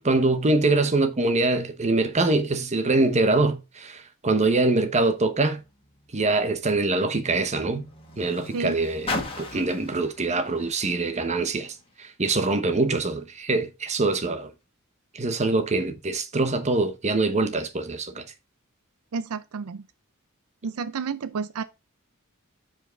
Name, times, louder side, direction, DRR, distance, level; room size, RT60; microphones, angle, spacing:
voice 1, 0.0-5.6 6.1-7.9 8.2-9.1 9.4-14.5 15.1-18.2, right 3 dB, 30° right, 0.9 m, -24 dB
Car, 5.5-12.1 12.9-13.0, left 2 dB, 25° left, 1.8 m, -39 dB
voice 2, 19.1-19.9 20.6-21.6, right 5 dB, 75° right, 0.5 m, -31 dB
5.9 x 5.0 x 5.1 m
head